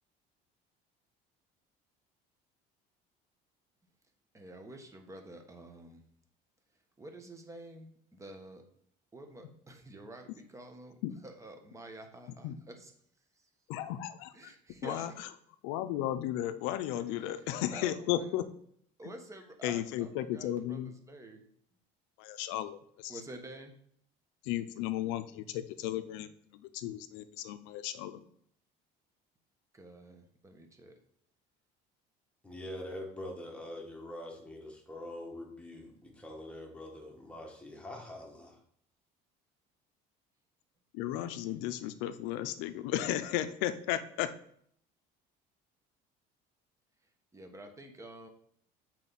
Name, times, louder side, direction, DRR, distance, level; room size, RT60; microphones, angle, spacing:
voice 1, 4.3-6.0 7.0-8.6 9.1-11.0 11.2-12.9 14.3-15.1 17.0-18.5 19.0-21.4 23.1-23.7 29.7-31.0 47.3-48.3, right 1 dB, 15° right, 5 dB, 1.2 m, -49 dB
voice 2, 13.7-14.5 14.8-15.1 15.6-18.4 19.6-20.9 22.2-23.2 24.4-28.2 40.9-44.3, left 12 dB, 85° left, 12 dB, 0.6 m, -34 dB
voice 3, 32.4-38.6, left 1 dB, 5° left, 0 dB, 1.7 m, -44 dB
7.5 x 4.5 x 4.1 m, 0.66 s
cardioid pair, 110°, 19 cm